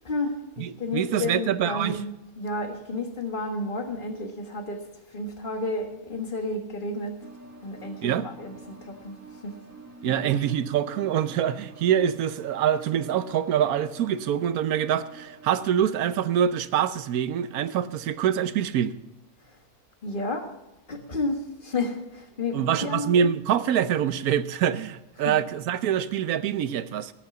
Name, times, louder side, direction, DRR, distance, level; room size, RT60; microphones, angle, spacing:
voice 1, 0.0-2.1 2.4-4.8 5.1-7.2 7.6-9.1 9.4-9.5 10.2-10.3 20.0-20.5 20.9-23.3 25.2-25.3, left 2 dB, 35° left, 5 dB, 1.7 m, -31 dB
voice 2, 0.6-2.0 8.0-8.3 10.0-18.9 22.5-27.1, right 9 dB, 85° right, 14 dB, 1.2 m, -25 dB
sound 1, 7.2-15.7, right 4 dB, 10° right, 1.8 m, -47 dB
18.5 x 6.8 x 7.2 m, 0.96 s
omnidirectional pair, 1.5 m